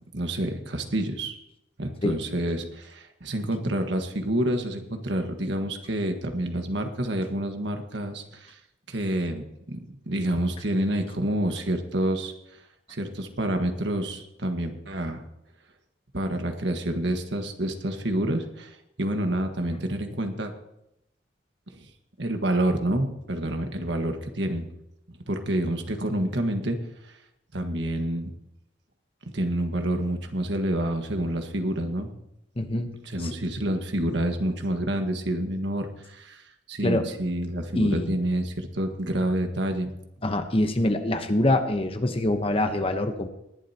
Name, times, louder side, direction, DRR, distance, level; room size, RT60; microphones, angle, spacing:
voice 1, 0.1-1.4 1.8-8.6 8.9-9.8 10.0-12.3 12.9-15.2 16.1-20.5 21.7-21.9 22.2-24.7 25.1-26.8 27.5-28.3 29.3-32.1 33.0-39.9, right 1 dB, 70° right, 5 dB, 1.6 m, -28 dB
voice 2, 32.6-32.9 33.2-33.3 36.8-37.1 37.7-38.1 40.2-43.3, left 1 dB, 30° left, 7 dB, 1.0 m, -24 dB
19.5 x 11.5 x 2.9 m, 0.84 s
head